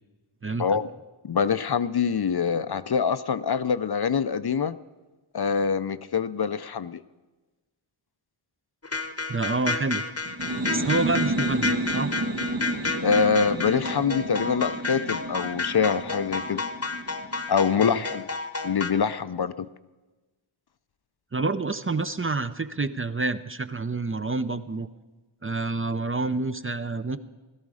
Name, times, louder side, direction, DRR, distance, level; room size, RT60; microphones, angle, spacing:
voice 1, 1.2-4.8 5.3-7.0 13.0-16.6 17.5-18.3 18.6-19.7, left 6 dB, 50° left, 14 dB, 0.5 m, -25 dB
sound 1, 8.8-18.9, left 3 dB, 30° left, 0.9 m, -31 dB
voice 2, 9.3-10.0 10.7-12.1 17.8-18.0 21.3-24.9 25.4-27.2, right 3 dB, 25° right, 11 dB, 0.5 m, -28 dB
sound 2, 10.3-17.8, right 2 dB, 60° right, 1.3 m, -31 dB
16.5 x 13.0 x 4.9 m, 1.2 s
wide cardioid pair, 55°, 50 cm